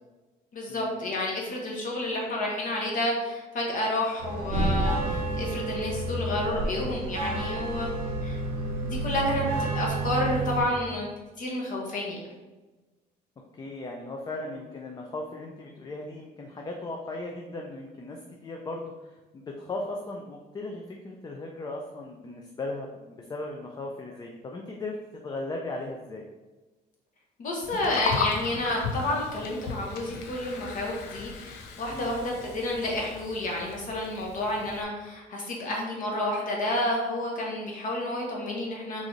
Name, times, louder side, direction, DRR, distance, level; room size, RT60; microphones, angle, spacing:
voice 1, 0.5-7.9 8.2-11.1 11.4-12.2 27.4-39.1, left 1 dB, 50° left, -1 dB, 0.8 m, -30 dB
sound 1, 4.2-10.6, right 2 dB, 85° right, 0.9 m, -30 dB
voice 2, 13.4-26.2 31.9-32.2, left 2 dB, 25° left, 1 dB, 0.4 m, -37 dB
Gurgling, 27.6-34.8, left 5 dB, 80° left, 0.5 m, -36 dB
3.7 x 2.5 x 3.0 m, 1.2 s
cardioid pair, 110°, 17 cm